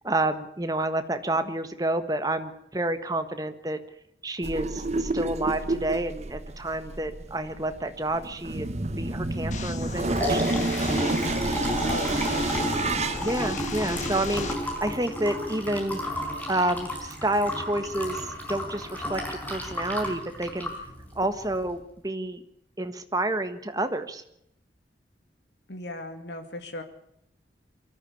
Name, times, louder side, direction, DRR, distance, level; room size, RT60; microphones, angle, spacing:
voice 1, 0.0-3.8 4.2-8.7 9.0-10.5 13.2-16.0 16.5-20.7 21.1-22.4 22.8-24.2, right 1 dB, 20° right, 9 dB, 1.5 m, -29 dB
sound 1, 4.4-14.9, right 2 dB, 40° right, 1.0 m, -30 dB
sound 2, 9.5-14.5, left 4 dB, 40° left, 1.8 m, -38 dB
Liquid, 9.8-21.7, equal, 10° left, 4.8 m, -32 dB
voice 2, 11.8-13.1 25.7-26.8, left 2 dB, 80° left, 6 dB, 2.4 m, -38 dB
23.5 x 14.0 x 8.6 m, 0.77 s
head